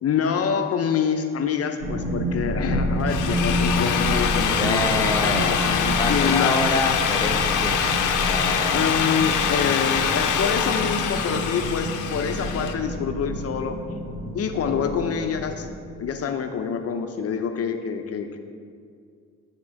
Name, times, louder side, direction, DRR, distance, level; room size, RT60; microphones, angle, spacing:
voice 1, 0.0-6.6 8.7-13.8 14.3-15.7 16.0-18.4, left 7 dB, 50° left, 7 dB, 0.7 m, -26 dB
sound 1, 1.8-15.7, equal, 90° right, 1.9 m, -29 dB
sound 2, 2.7-5.5, right 1 dB, 55° right, 1.3 m, -34 dB
Drill, 2.9-12.7, left 7 dB, 90° left, 0.8 m, -24 dB
voice 2, 4.6-9.3, left 2 dB, 10° left, 4 dB, 0.6 m, -28 dB
11.0 x 3.7 x 6.2 m, 2.2 s
cardioid pair, 90°, 30 cm